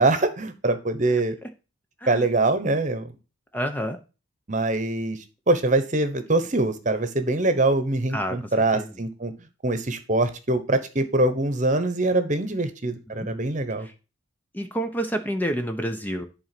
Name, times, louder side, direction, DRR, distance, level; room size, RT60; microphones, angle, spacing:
voice 1, 0.0-1.4 2.1-3.1 4.5-5.2 5.5-9.3 9.6-13.9, right 2 dB, 35° right, 10 dB, 1.1 m, -23 dB
voice 2, 3.5-4.0 8.1-8.9 13.2-13.3 13.8-13.9 14.5-16.2, equal, 10° left, 6 dB, 0.7 m, -29 dB
11.0 x 4.1 x 6.0 m, 0.31 s
head